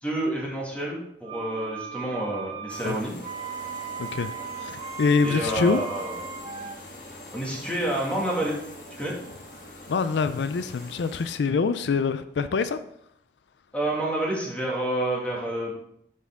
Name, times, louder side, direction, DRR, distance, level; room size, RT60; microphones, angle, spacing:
voice 1, 0.0-3.1 5.2-6.3 7.3-8.6 9.0-9.2 13.7-15.7, right 1 dB, 10° left, -4 dB, 2.0 m, -28 dB
sound 1, 1.2-6.8, right 6 dB, 30° right, 0.5 m, -37 dB
sound 2, 2.7-11.4, left 1 dB, 45° left, 1.5 m, -44 dB
voice 2, 4.0-4.3 4.6-5.8 9.9-12.8, left 5 dB, 85° left, 12 dB, 0.4 m, -25 dB
7.0 x 6.7 x 3.6 m, 0.74 s
head